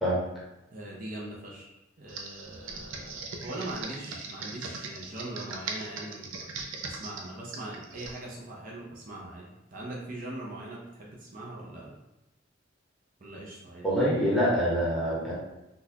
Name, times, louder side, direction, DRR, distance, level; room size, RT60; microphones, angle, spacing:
voice 1, 0.7-1.7 2.0-12.0 13.2-13.9, right 1 dB, 45° right, -4 dB, 0.6 m, -41 dB
Computer keyboard, 2.1-8.2, right 4 dB, 85° right, 0.5 m, -39 dB
voice 2, 13.8-15.3, equal, ahead, -7 dB, 0.9 m, -25 dB
3.8 x 2.4 x 2.8 m, 0.99 s
head